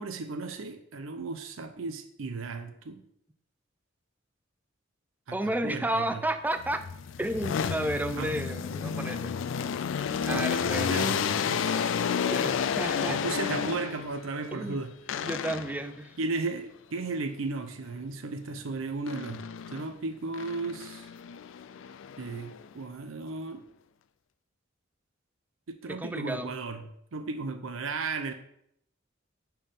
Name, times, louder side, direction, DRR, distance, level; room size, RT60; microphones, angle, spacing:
voice 1, 0.0-3.0 5.3-6.2 8.2-8.3 10.3-11.9 13.1-14.9 16.2-21.1 22.2-23.6 25.7-28.3, right 3 dB, 90° right, 8 dB, 0.6 m, -35 dB
voice 2, 5.3-6.8 7.2-9.3 10.3-11.1 12.3-13.2 14.5-14.8 15.2-16.1 25.9-26.5, right 1 dB, 10° right, 9 dB, 0.4 m, -32 dB
sound 1, 6.6-14.2 15.1-15.9 19.1-19.9 20.3-22.7, left 7 dB, 70° left, 0.4 m, -31 dB
5.4 x 4.5 x 5.2 m, 0.72 s
head